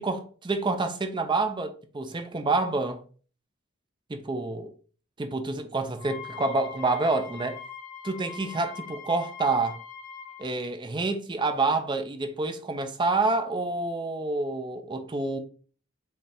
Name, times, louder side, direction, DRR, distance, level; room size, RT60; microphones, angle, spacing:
voice 1, 0.0-3.0 4.1-4.7 5.2-7.6 8.0-9.8 10.4-15.4, right 3 dB, 20° right, 0.5 m, -28 dB
Wind instrument woodwind instrument, 5.9-10.5, left 7 dB, 70° left, 1.8 m, -42 dB
5.2 x 2.4 x 4.2 m
head